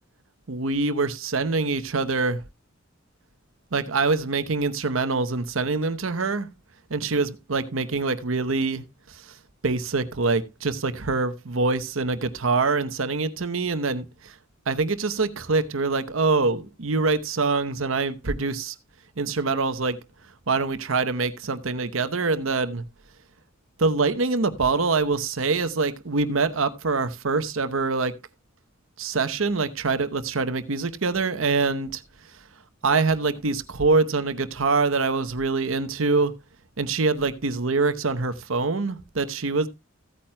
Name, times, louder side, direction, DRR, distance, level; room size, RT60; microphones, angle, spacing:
voice 1, 0.5-2.4 3.7-6.5 6.9-9.4 9.6-14.3 14.7-18.7 19.2-20.0 20.5-22.8 23.8-28.2 29.0-32.0 32.8-36.3 36.8-39.7, right 3 dB, 75° right, 0.9 m, -25 dB
15.5 x 8.7 x 2.3 m
head